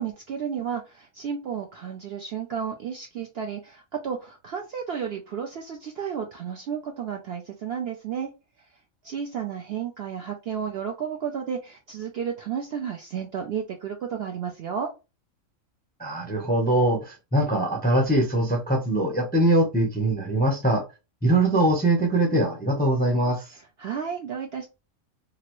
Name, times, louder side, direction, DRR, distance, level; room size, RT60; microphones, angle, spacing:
voice 1, 0.0-8.3 9.0-14.9 23.5-24.7, right 7 dB, 65° right, 2 dB, 0.6 m, -32 dB
voice 2, 16.0-20.8 21.2-23.5, right 1 dB, 10° left, 1 dB, 0.5 m, -22 dB
2.9 x 2.5 x 2.9 m, 0.28 s
omnidirectional pair, 1.4 m